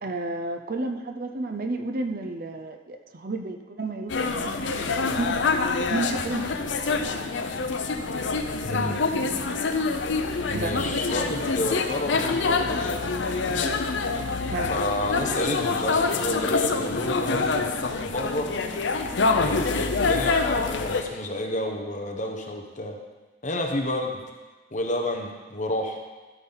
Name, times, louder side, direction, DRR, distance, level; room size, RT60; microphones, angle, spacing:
voice 1, 0.0-6.9 9.1-9.3 10.5-11.1 14.5-14.7, right 2 dB, 45° right, 6 dB, 0.6 m, -32 dB
sound 1, 4.1-21.0, left 4 dB, 65° left, 0.6 m, -26 dB
voice 2, 8.6-9.0 10.5-13.0 13.4-13.7 14.7-17.7 18.0-18.5 19.3-23.0 23.4-24.2 24.7-26.0, left 1 dB, 40° left, 2 dB, 1.0 m, -30 dB
12.5 x 5.8 x 4.0 m, 1.3 s
head